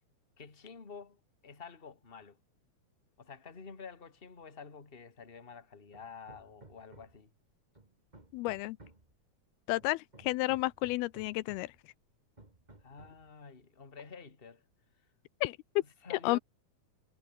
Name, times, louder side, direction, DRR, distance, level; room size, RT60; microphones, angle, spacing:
voice 1, 0.4-2.4 3.2-7.3 12.8-14.6 15.8-16.4, left 5 dB, 15° left, 2.3 m, -49 dB
Hammer, 5.9-7.3 7.7-9.1 9.8-11.8 12.4-13.3, right 2 dB, 15° right, 2.4 m, -57 dB
voice 2, 8.3-8.8 9.7-11.7 15.4-15.6 16.1-16.4, left 19 dB, 90° left, 2.6 m, -31 dB
omnidirectional pair, 4.4 m